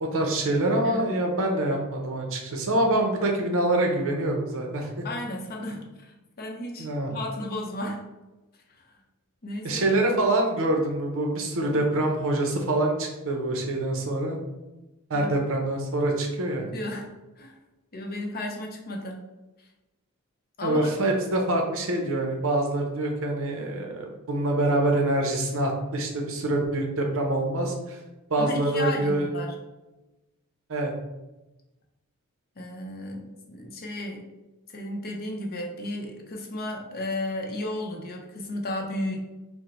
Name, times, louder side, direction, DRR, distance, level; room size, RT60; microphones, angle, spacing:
voice 1, 0.0-5.0 6.8-7.1 9.6-14.4 15.1-16.7 20.6-28.0 28.3-29.3 30.7-30.9, right 1 dB, 65° right, 2 dB, 0.7 m, -25 dB
voice 2, 5.0-8.0 8.8-9.0 9.4-10.0 11.7-11.9 15.1-15.3 16.6-17.1 17.4-17.5 17.9-19.2 20.6-20.9 28.4-29.5 32.6-34.2 34.7-39.2, left 1 dB, 45° left, 1 dB, 0.6 m, -34 dB
5.1 x 2.1 x 3.1 m, 1.1 s
head